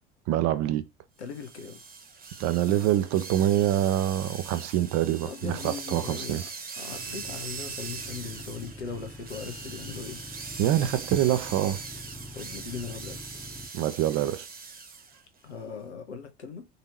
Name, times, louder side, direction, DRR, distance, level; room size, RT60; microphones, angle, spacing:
voice 1, 0.3-0.8 2.4-6.4 10.6-11.8 13.7-14.5, right 12 dB, 55° right, 0.7 m, -25 dB
voice 2, 1.2-1.8 5.2-6.4 6.8-10.2 12.3-13.2 15.4-16.7, left 6 dB, 85° left, 0.8 m, -39 dB
sound 1, 1.3-15.2, right 5 dB, 30° right, 1.2 m, -41 dB
sound 2, 6.9-13.7, equal, ahead, 1.0 m, -45 dB
4.0 x 2.9 x 4.2 m
hypercardioid pair, 65°, 33 cm